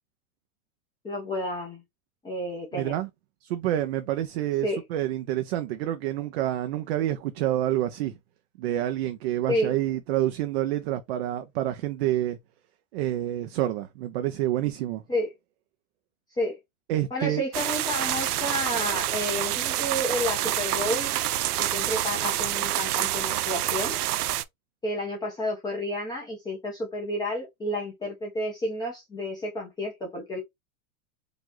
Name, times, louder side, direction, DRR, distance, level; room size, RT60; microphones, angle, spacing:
voice 1, 1.0-1.8 2.2-2.9 4.6-4.8 9.5-9.7 15.1-15.3 16.4-16.6 17.1-21.1 21.6-23.9 24.8-30.4, left 1 dB, 10° left, 0.9 m, -30 dB
voice 2, 2.7-3.1 3.4-8.2 8.6-12.4 12.9-15.0 16.9-17.4, right 13 dB, 45° right, 0.6 m, -28 dB
sound 1, 17.5-24.4, right 14 dB, 85° right, 0.7 m, -27 dB
4.9 x 2.5 x 3.9 m
supercardioid pair, 155°, 44 cm